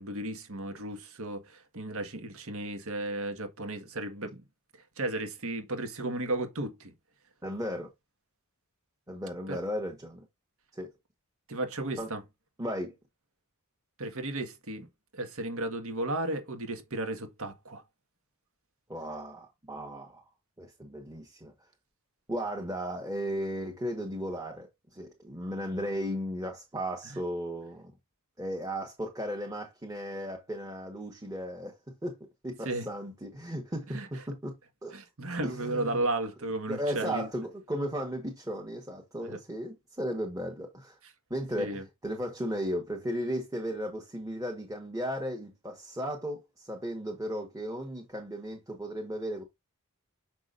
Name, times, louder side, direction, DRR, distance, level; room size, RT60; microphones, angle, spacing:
voice 1, 0.0-4.4 5.0-6.9 9.5-9.6 11.5-12.2 14.0-14.9 15.1-17.8 27.1-27.2 32.7-32.9 33.9-34.1 34.9-37.3 39.2-39.4 41.6-41.9, right 2 dB, 70° right, 1.7 m, -34 dB
voice 2, 7.4-7.9 9.1-10.2 10.7-10.9 12.0-12.1 12.6-12.9 18.9-20.2 20.6-21.5 22.3-27.9 28.4-31.8 32.0-32.1 32.4-34.6 34.8-34.9 35.4-36.0 36.7-41.0 41.3-49.4, equal, 15° right, 1.4 m, -35 dB
6.9 x 6.1 x 2.6 m
head